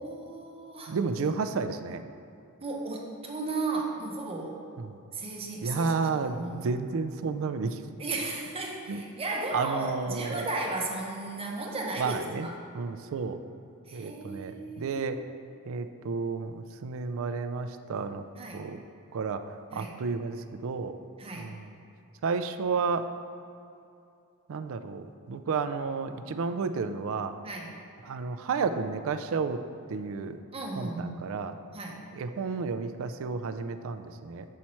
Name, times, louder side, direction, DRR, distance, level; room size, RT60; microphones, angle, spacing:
voice 1, 0.0-1.1 2.6-4.6 5.1-6.7 8.0-12.6 13.9-15.1 18.4-18.6 19.7-20.0 21.2-21.6 27.4-27.7 30.5-31.2 31.7-32.0, right 2 dB, 25° right, -1 dB, 0.9 m, -35 dB
voice 2, 0.9-2.0 4.8-5.0 5.6-7.8 8.9-9.0 9.5-10.5 12.0-12.5 12.7-13.4 13.9-15.2 15.7-18.2 18.5-18.8 19.1-19.4 19.7-21.0 21.4-21.6 22.2-23.1 24.5-27.3 28.0-29.6 29.9-30.4 30.8-31.5 32.1-34.5, right 4 dB, 65° right, 9 dB, 0.4 m, -31 dB
7.3 x 4.5 x 4.3 m, 2.6 s
head